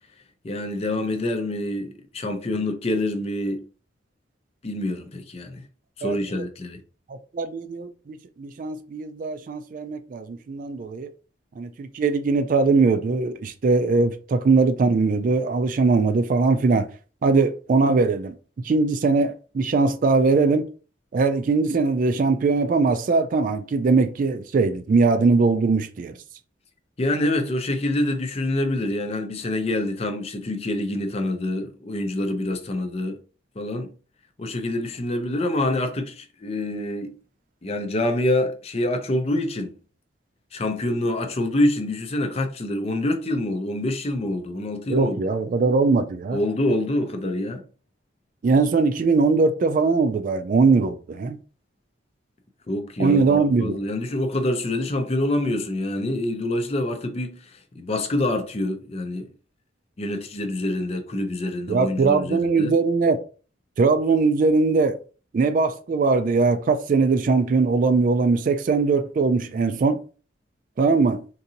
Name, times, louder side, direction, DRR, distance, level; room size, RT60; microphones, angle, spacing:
voice 1, 0.4-3.6 4.6-5.6 6.0-6.8 27.0-33.2 33.6-33.9 34.4-37.1 37.6-39.7 40.5-45.2 46.3-47.6 52.7-59.3 60.0-62.7, left 1 dB, 35° left, 0.5 m, -26 dB
voice 2, 6.0-6.4 7.3-11.1 11.6-16.9 17.2-18.3 18.6-20.7 21.1-26.1 44.9-46.4 48.4-51.4 53.0-53.8 61.7-63.2 63.8-65.0 65.3-70.0 70.8-71.2, right 4 dB, 45° right, 0.3 m, -21 dB
3.8 x 2.6 x 2.7 m
head